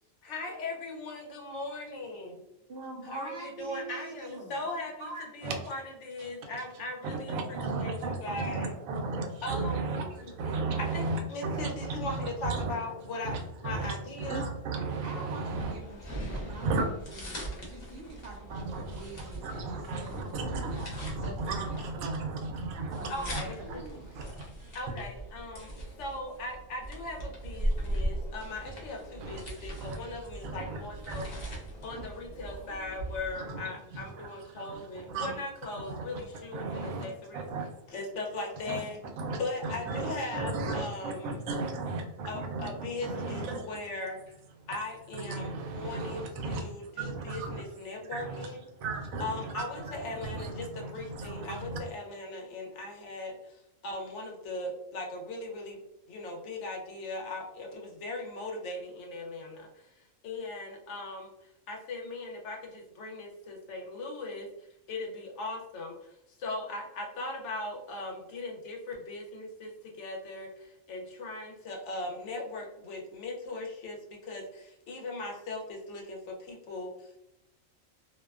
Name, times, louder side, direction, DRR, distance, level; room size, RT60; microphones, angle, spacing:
voice 1, 0.2-2.4 3.0-5.1 5.3-7.9 8.2-8.7 9.4-9.9 10.2-10.3 10.9-13.4 13.6-14.5 23.1-23.6 24.7-31.3 31.8-37.4 37.9-39.0 39.4-41.4 42.2-44.2 44.7-48.6 49.2-55.8 56.1-64.5 64.9-65.9 66.4-77.2, left 2 dB, 65° left, 1 dB, 0.9 m, -39 dB
voice 2, 2.7-4.5 5.0-5.3 15.0-22.2 23.0-23.3 23.6-24.4, right 2 dB, 65° right, 0 dB, 0.6 m, -45 dB
voice 3, 7.0-12.8 13.2-15.7 16.3-16.9 18.5-23.5 24.1-24.9 29.2-31.3 31.9-32.1 33.3-35.4 35.9-36.2 36.5-37.1 37.3-37.9 38.7-38.8 39.2-43.7 45.1-47.6 48.0-51.8, right 3 dB, 90° right, 4 dB, 1.0 m, -35 dB
sound 1, 15.5-33.3, right 1 dB, 40° left, 0.6 m, -39 dB
2.5 x 2.2 x 2.3 m, 0.82 s
omnidirectional pair, 1.4 m